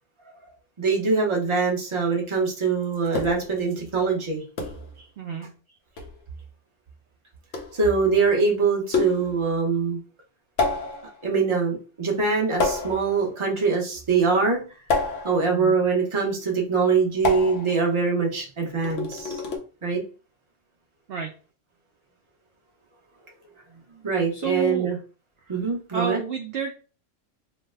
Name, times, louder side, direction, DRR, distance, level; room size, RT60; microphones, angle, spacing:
voice 1, 0.8-4.4 7.7-10.0 11.2-14.6 15.2-19.4 19.8-20.0 24.0-25.0 25.5-26.2, right 4 dB, 30° right, -1 dB, 0.8 m, -23 dB
sound 1, 3.2-3.6 4.6-4.9 6.0-6.2 7.5-7.8 8.9-9.5 10.6-11.2 12.6-13.2 14.9-15.6 17.2-17.9 18.8-19.6, left 3 dB, 75° left, 1.0 m, -28 dB
voice 2, 5.2-5.5 15.5-15.8 21.1-21.3 24.3-24.9 25.9-26.7, right 6 dB, 65° right, 3 dB, 0.6 m, -30 dB
3.1 x 2.0 x 3.3 m, 0.36 s
omnidirectional pair, 1.3 m